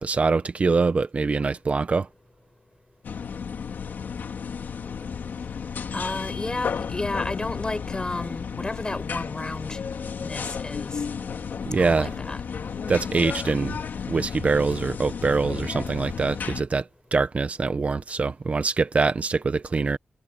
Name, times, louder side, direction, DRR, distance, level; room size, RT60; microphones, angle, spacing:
voice 1, 0.0-2.1 11.7-12.1 12.9-13.8 14.1-16.8 17.1-20.0, right 4 dB, 45° right, 1.1 m, -24 dB
sound 1, 3.0-16.6, left 6 dB, 90° left, 2.7 m, -33 dB
voice 2, 5.9-9.8 10.2-11.0 11.7-12.4, left 2 dB, 25° left, 6.0 m, -32 dB
wide cardioid pair, 120°, 3 cm